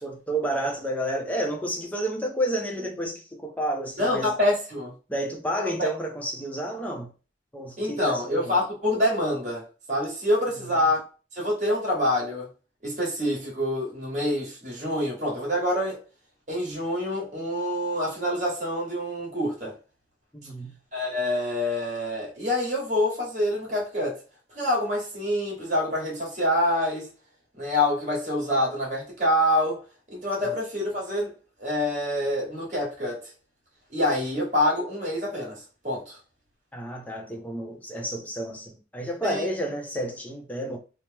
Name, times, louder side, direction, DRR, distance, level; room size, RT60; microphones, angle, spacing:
voice 1, 0.0-4.3 5.1-7.1 7.5-8.5 20.3-20.8 36.7-40.8, right 1 dB, 10° left, 0.5 m, -30 dB
voice 2, 4.0-4.9 5.8-5.9 7.8-11.0 11.3-12.5 12.8-16.0 16.5-19.8 20.9-24.2 24.5-27.1 27.6-29.8 30.1-31.3 31.6-33.2 33.9-35.6 35.8-36.2 39.2-39.5, left 1 dB, 40° right, 1.4 m, -26 dB
2.9 x 2.0 x 3.3 m
head